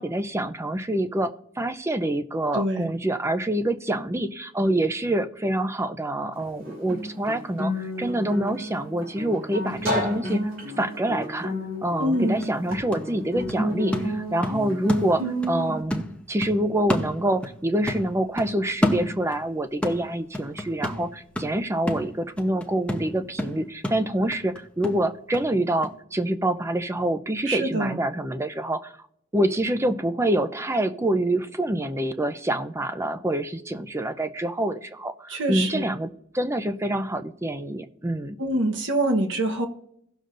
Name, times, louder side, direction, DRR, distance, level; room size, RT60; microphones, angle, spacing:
voice 1, 0.0-10.5 10.8-11.5 11.8-28.9 29.3-38.4, right 1 dB, 15° right, 10 dB, 0.5 m, -26 dB
voice 2, 2.5-2.9 12.0-12.5 27.5-28.0 35.3-35.9 38.4-39.7, right 1 dB, 65° right, 4 dB, 1.1 m, -25 dB
Guitar, 6.4-15.8, equal, 85° right, 3.3 m, -31 dB
sound 1, 12.0-12.1 12.4-15.6 15.9-17.6 17.9-19.5 19.8-25.5 25.8-25.9, left 1 dB, 5° left, 0.9 m, -30 dB
17.5 x 6.6 x 2.6 m, 0.73 s
head